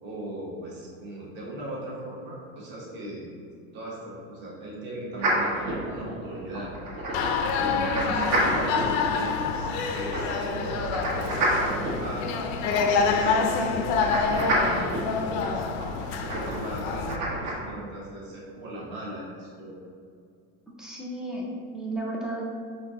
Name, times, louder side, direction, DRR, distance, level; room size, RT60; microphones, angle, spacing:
voice 1, 0.0-3.3 3.7-6.7 7.5-15.1 15.4-15.7 16.0-19.7, right 1 dB, 35° right, -5 dB, 1.1 m, -38 dB
sound 1, 5.2-17.5, right 1 dB, 80° right, 1.5 m, -30 dB
sound 2, 7.1-17.2, left 5 dB, 75° left, 0.5 m, -27 dB
voice 2, 7.9-8.4 20.8-22.4, right 1 dB, ahead, -4 dB, 0.3 m, -34 dB
5.5 x 2.6 x 3.6 m, 2.3 s
cardioid pair, 175°, 32 cm